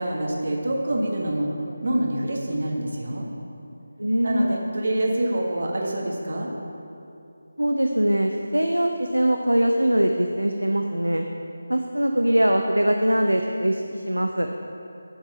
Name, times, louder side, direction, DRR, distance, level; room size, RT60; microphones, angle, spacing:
voice 1, 0.0-1.5 1.8-3.3 4.2-6.5, right 1 dB, 55° right, -1 dB, 1.5 m, -26 dB
voice 2, 4.0-4.5 7.6-11.3 11.7-14.5, right 1 dB, 90° right, 4 dB, 0.5 m, -22 dB
8.6 x 4.7 x 6.8 m, 2.7 s
figure-of-eight pair, 160°, 0 cm